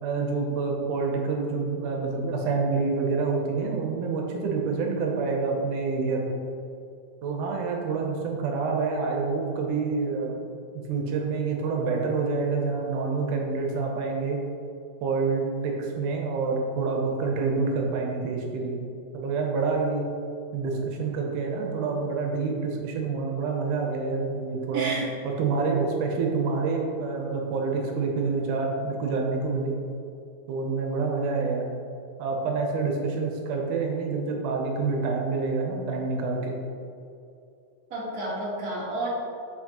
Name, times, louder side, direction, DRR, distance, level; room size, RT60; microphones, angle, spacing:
voice 1, 0.0-6.4 7.2-10.5 10.7-14.4 15.0-18.8 19.1-20.1 20.5-24.9 25.2-29.7 30.5-31.7 32.2-36.6, right 4 dB, 75° right, 0 dB, 2.1 m, -27 dB
voice 2, 24.7-25.0 37.9-39.1, right 2 dB, 45° right, -7 dB, 1.2 m, -30 dB
6.7 x 5.9 x 2.9 m, 2.5 s
omnidirectional pair, 3.9 m